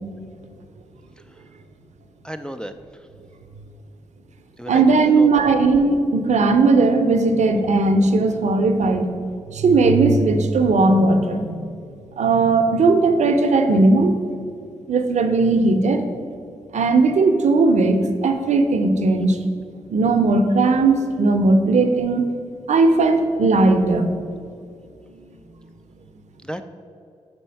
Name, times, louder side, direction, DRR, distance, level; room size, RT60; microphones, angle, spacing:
voice 1, 2.2-2.7 4.6-5.5 26.4-26.6, equal, 5° left, 7 dB, 0.3 m, -32 dB
voice 2, 4.7-9.1 9.5-11.7 12.2-14.2 14.9-16.0 16.7-19.4 19.9-22.2 22.7-24.1 25.2-25.4, right 3 dB, 65° right, 7 dB, 0.6 m, -17 dB
4.4 x 4.2 x 5.7 m, 2.3 s
cardioid pair, 55°, 13 cm